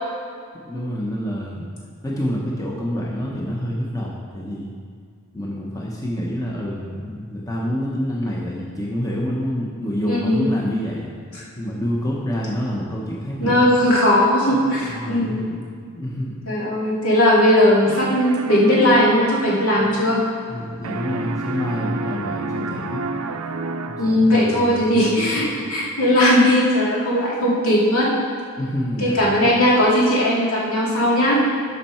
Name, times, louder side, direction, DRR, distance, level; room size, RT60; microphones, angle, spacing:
voice 1, 0.6-1.7 2.0-4.7 5.3-11.1 11.6-13.6 14.5-15.6 15.9-16.4 19.7-20.0 20.5-23.0 23.9-25.5 28.6-29.5, equal, 15° left, -4 dB, 0.9 m, -27 dB
voice 2, 10.1-10.4 13.4-15.4 16.5-20.2 24.0-28.1 29.0-31.4, left 1 dB, 70° left, -5 dB, 2.4 m, -18 dB
sound 1, 17.8-20.6 20.8-24.5, right 3 dB, 85° right, 0.5 m, -31 dB
12.0 x 5.5 x 4.4 m, 2.1 s
head